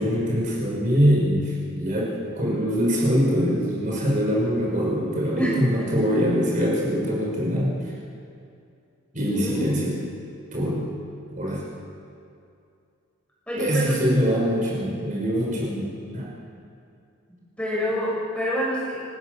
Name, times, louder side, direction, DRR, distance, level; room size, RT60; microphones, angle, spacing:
voice 1, 0.0-7.7 9.1-10.0 10.5-10.9 11.4-11.6 13.6-16.3, equal, 40° right, -4 dB, 5.6 m, -23 dB
voice 2, 5.4-5.9 9.2-10.1 13.5-13.9 17.6-19.0, equal, 5° left, -6 dB, 6.8 m, -28 dB
29.5 x 19.0 x 6.7 m, 2.5 s
head